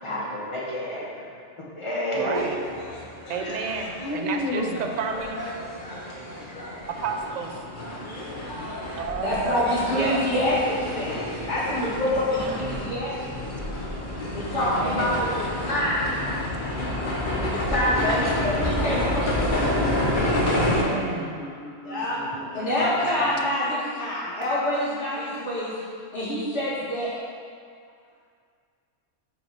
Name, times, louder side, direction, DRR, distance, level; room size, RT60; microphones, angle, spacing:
voice 1, 0.0-2.6 3.4-4.8 14.9-15.2 17.9-18.1 20.2-23.1, left 1 dB, 25° left, -6 dB, 1.1 m, -32 dB
voice 2, 2.1-2.6 3.3-5.4 7.0-7.6 9.0-9.6 9.9-10.3 12.1-12.6 14.6-15.2 20.6-21.4, right 5 dB, 60° right, 3 dB, 0.4 m, -31 dB
sound 1, 2.3-20.8, left 1 dB, 45° left, 0.9 m, -29 dB
voice 3, 9.2-13.1 14.3-16.2 17.4-19.7 20.1-20.2 21.8-22.2 22.5-25.7 26.1-27.2, left 1 dB, 65° left, -9 dB, 2.1 m, -26 dB
5.3 x 4.7 x 4.6 m, 2.2 s
omnidirectional pair, 1.3 m